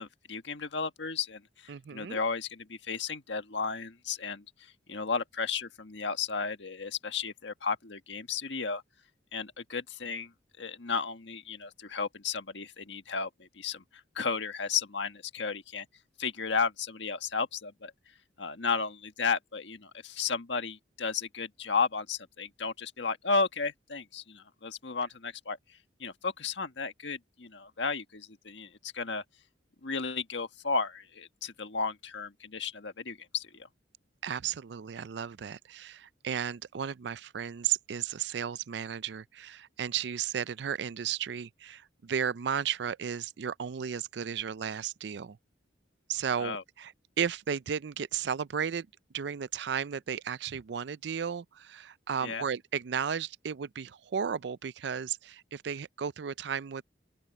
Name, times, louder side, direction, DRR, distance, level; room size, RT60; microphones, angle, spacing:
voice 1, 0.0-4.4 4.9-8.8 9.3-10.3 10.6-13.8 14.1-15.9 16.2-17.9 18.4-25.6 26.0-29.2 29.8-33.7 46.4-46.6 52.2-52.4, left 5 dB, 75° left, 1.6 m, -33 dB
voice 2, 1.7-2.2 34.2-45.4 46.1-46.9 47.2-48.9 49.1-56.8, right 7 dB, 70° right, 0.4 m, -34 dB
open air
head